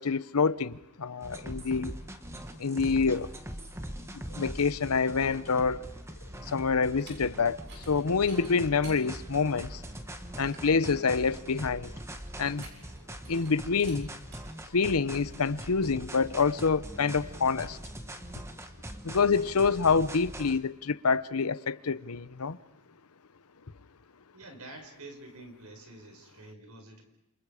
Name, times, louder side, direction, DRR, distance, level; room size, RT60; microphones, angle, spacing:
voice 1, 0.0-1.9 2.6-3.3 4.1-5.9 6.4-9.8 10.4-11.9 12.4-12.7 13.3-14.1 14.7-17.8 19.0-22.6, left 5 dB, 85° left, 0.8 m, -27 dB
sound 1, 1.2-20.6, right 1 dB, 10° right, 1.3 m, -42 dB
sound 2, 6.9-7.2 7.6-7.9 8.2-9.0 9.5-9.6 10.0-10.1 10.4-10.7 12.4-13.0 13.2-13.5 13.8-14.0 14.3-14.4, right 3 dB, 50° right, 7.5 m, -51 dB
voice 2, 24.3-27.0, right 2 dB, 80° right, 5.0 m, -48 dB
30.0 x 28.5 x 5.0 m
head